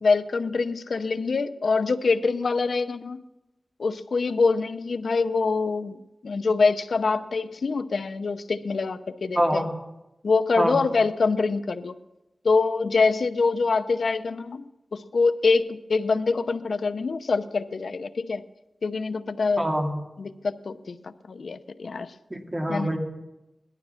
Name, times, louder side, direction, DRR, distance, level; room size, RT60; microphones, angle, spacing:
voice 1, 0.0-3.2 3.8-9.7 10.2-11.9 12.4-18.4 18.8-19.7 20.2-22.1 22.7-22.9, left 4 dB, 80° left, 12 dB, 0.7 m, -25 dB
voice 2, 9.4-9.7 10.6-10.8 19.6-19.9 22.3-23.0, equal, 25° right, 2 dB, 2.6 m, -25 dB
18.0 x 12.0 x 5.8 m, 0.97 s
wide cardioid pair, 70°, 0 cm